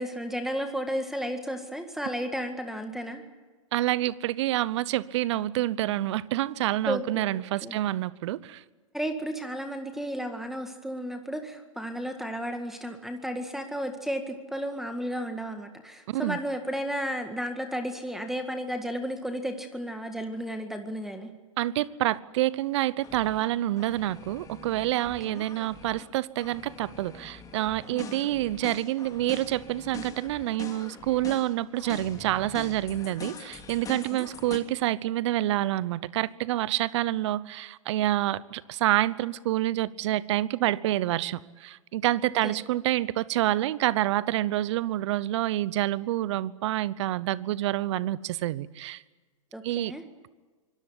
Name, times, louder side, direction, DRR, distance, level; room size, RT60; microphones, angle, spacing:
voice 1, 0.0-3.2 6.9-7.8 8.9-21.3 25.3-25.4 27.9-28.3 34.1-34.3 42.4-42.6 49.5-50.0, equal, ahead, 7 dB, 1.9 m, -33 dB
voice 2, 3.7-8.6 16.1-16.4 21.6-49.0 49.6-49.9, right 15 dB, 55° right, 20 dB, 0.9 m, -27 dB
sound 1, 23.0-23.5 23.8-26.1 26.4-34.6, left 5 dB, 20° left, 2.8 m, -44 dB
24.5 x 18.0 x 10.0 m, 1.3 s
hypercardioid pair, 110°, 17 cm